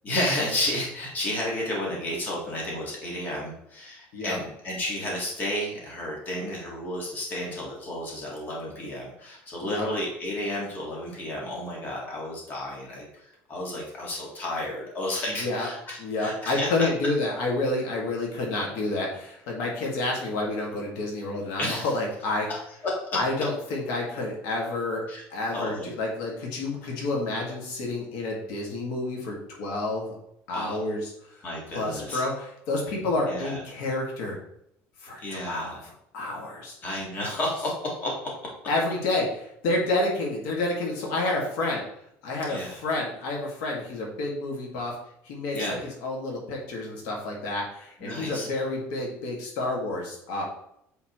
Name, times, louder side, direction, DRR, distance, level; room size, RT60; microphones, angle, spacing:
voice 1, 0.0-16.7 21.6-21.9 22.5-22.9 25.1-25.2 25.5-25.9 30.5-30.8 31.4-32.2 33.3-33.6 35.2-35.7 36.8-38.1 42.5-42.7 45.5-45.8 48.0-48.5, left 1 dB, 30° left, -3 dB, 1.8 m, -32 dB
voice 2, 15.4-15.7 16.0-22.5 23.1-25.0 25.3-30.2 30.5-34.4 35.0-36.7 37.1-37.4 38.7-41.8 42.2-44.9 45.2-50.4, left 2 dB, 75° left, -1 dB, 1.8 m, -29 dB
8.1 x 4.1 x 3.0 m, 0.75 s
cardioid pair, 165°, 6 cm